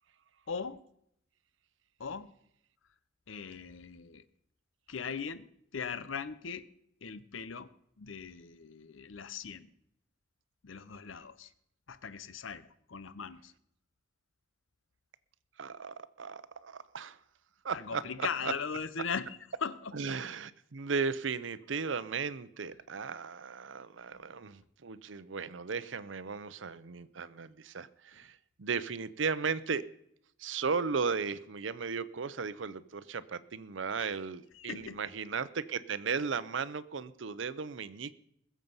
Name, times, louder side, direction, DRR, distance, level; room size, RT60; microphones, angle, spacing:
voice 1, 0.5-0.8 2.0-2.3 3.3-4.2 4.9-5.5 5.7-6.6 7.0-7.7 8.0-9.7 10.6-11.5 11.9-13.5 17.7-19.3 19.6-19.9 34.0-34.1 34.6-35.0, left 6 dB, 85° left, 16 dB, 0.8 m, -39 dB
voice 2, 15.6-17.2 17.6-18.5 19.9-29.8 30.4-38.1, right 5 dB, 70° right, 16 dB, 0.7 m, -36 dB
21.0 x 7.4 x 5.5 m, 0.75 s
head